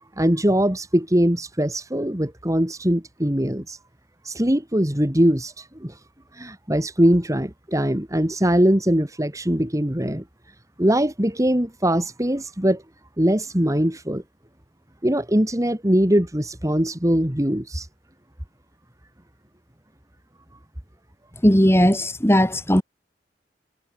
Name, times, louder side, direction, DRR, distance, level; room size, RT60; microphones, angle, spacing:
voice 1, 0.2-3.8 4.2-6.0 6.3-10.2 10.8-12.8 13.2-14.2 15.0-17.9, equal, 20° right, 2.5 m, -21 dB
voice 2, 21.4-22.8, equal, 15° left, 4.7 m, -17 dB
head